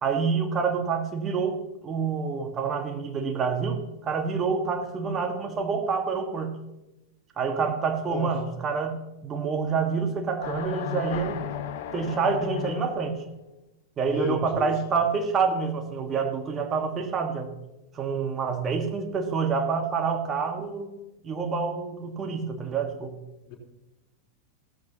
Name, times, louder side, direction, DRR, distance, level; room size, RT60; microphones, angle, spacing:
voice 1, 0.0-1.6 1.8-6.5 7.4-11.4 11.9-13.2 14.0-17.5 18.0-20.9 21.2-23.1, right 5 dB, 25° right, 5 dB, 1.7 m, -27 dB
sound 1, 10.4-13.3, left 9 dB, 50° left, 0.8 m, -34 dB
voice 2, 14.0-14.7 23.5-23.6, left 4 dB, 35° left, -1 dB, 3.7 m, -32 dB
16.0 x 14.0 x 3.0 m, 0.98 s
figure-of-eight pair, 90°, 0 cm